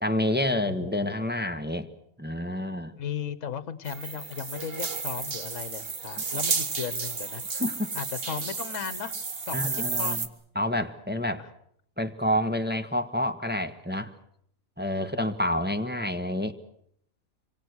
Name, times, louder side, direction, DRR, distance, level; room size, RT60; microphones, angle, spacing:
voice 1, 0.0-1.9 2.2-2.9 6.2-6.4 7.6-7.9 9.5-10.2 10.5-11.4 12.0-14.1 14.8-16.5, left 1 dB, 5° right, 7 dB, 1.4 m, -28 dB
voice 2, 0.6-1.3 3.0-7.6 7.9-9.2 9.4-10.2 11.4-11.5 15.1-15.3, left 7 dB, 60° left, 15 dB, 1.5 m, -36 dB
sound 1, 3.9-10.3, right 4 dB, 40° right, 1.8 m, -32 dB
26.5 x 25.0 x 6.5 m, 0.69 s
omnidirectional pair, 1.5 m